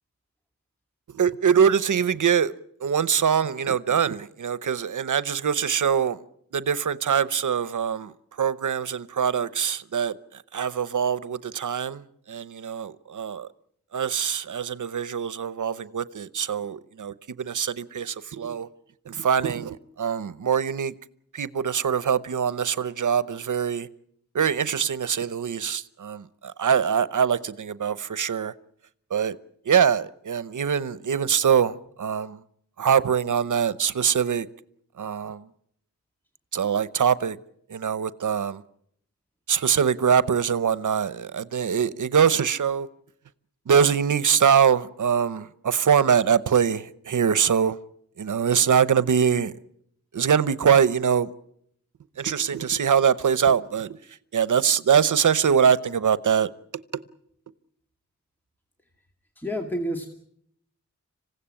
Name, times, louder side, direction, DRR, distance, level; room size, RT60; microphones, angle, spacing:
voice 1, 1.1-2.5 2.8-6.2 6.5-13.5 13.9-18.7 19.1-20.9 21.3-23.9 24.3-28.5 29.1-29.4 29.6-32.4 32.8-34.5 35.0-35.5 36.5-37.4 37.7-38.6 39.5-42.9 43.7-47.8 48.2-49.5 50.1-51.3 52.2-54.0 54.3-56.5, right 7 dB, 80° right, 0.8 m, -23 dB
voice 2, 59.4-60.1, equal, 5° left, 2.2 m, -29 dB
26.5 x 16.5 x 8.9 m
wide cardioid pair, 90°, 30 cm